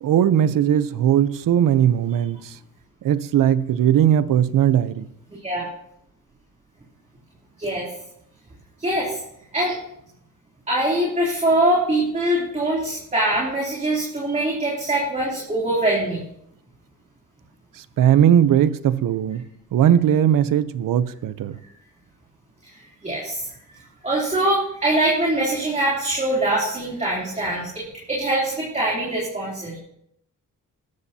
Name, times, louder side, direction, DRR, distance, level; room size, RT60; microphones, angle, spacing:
voice 1, 0.0-2.6 3.0-5.1 18.0-21.6, right 10 dB, 85° right, 14 dB, 0.8 m, -19 dB
voice 2, 5.3-5.7 7.6-7.9 8.8-9.2 9.5-9.8 10.7-16.2 23.0-23.5 24.0-27.8 28.1-29.8, right 1 dB, 20° right, -5 dB, 3.3 m, -23 dB
18.5 x 13.0 x 2.9 m, 0.76 s
wide cardioid pair, 135°, 32 cm